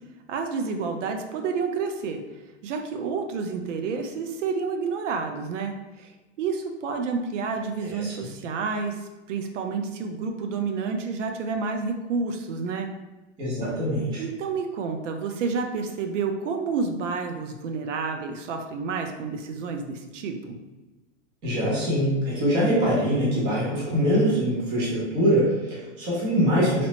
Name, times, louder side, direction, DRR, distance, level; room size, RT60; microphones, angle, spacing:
voice 1, 0.3-2.2 2.6-6.1 6.4-8.9 9.3-12.9 14.2-20.6, right 5 dB, 80° right, 5 dB, 0.5 m, -29 dB
voice 2, 7.8-8.1 13.4-14.2 21.4-26.9, equal, 15° right, -7 dB, 0.4 m, -23 dB
2.9 x 2.0 x 2.8 m, 1.1 s
supercardioid pair, 165°, 36 cm